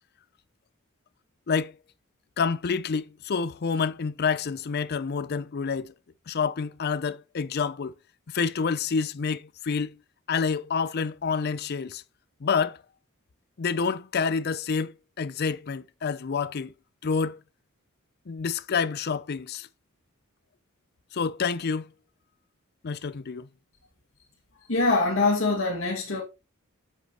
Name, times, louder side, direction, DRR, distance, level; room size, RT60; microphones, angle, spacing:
voice 1, 2.4-5.9 6.3-7.9 8.3-10.0 10.3-12.0 12.4-12.8 13.6-16.7 17.0-17.4 18.3-19.7 21.1-21.9 22.8-23.5, left 5 dB, 50° left, 0.5 m, -28 dB
voice 2, 24.7-26.2, left 3 dB, 70° left, 2.1 m, -23 dB
8.2 x 7.8 x 3.0 m
head